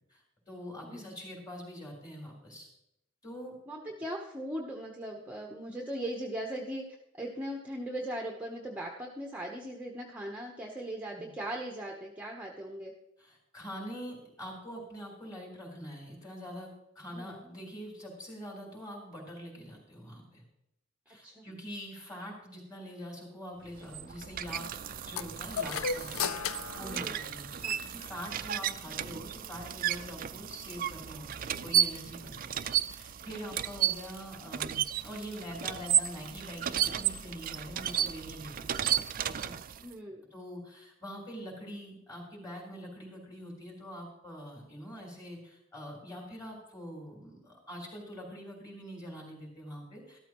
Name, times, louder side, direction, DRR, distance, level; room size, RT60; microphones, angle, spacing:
voice 1, 0.1-2.7 3.2-3.6 11.1-11.3 13.2-20.4 21.1-38.9 39.2-39.5 40.3-50.2, equal, 20° left, -1 dB, 3.9 m, -44 dB
voice 2, 0.8-1.2 3.7-6.8 7.1-12.9 17.1-17.4 21.2-21.4 26.8-27.2 27.6-27.8 39.8-40.2, right 1 dB, 5° right, 0 dB, 0.9 m, -39 dB
sound 1, 23.7-39.9, right 10 dB, 40° right, 0.4 m, -33 dB
sound 2, 25.2-27.8, left 7 dB, 85° left, 0.5 m, -36 dB
13.0 x 13.0 x 3.0 m, 0.83 s
head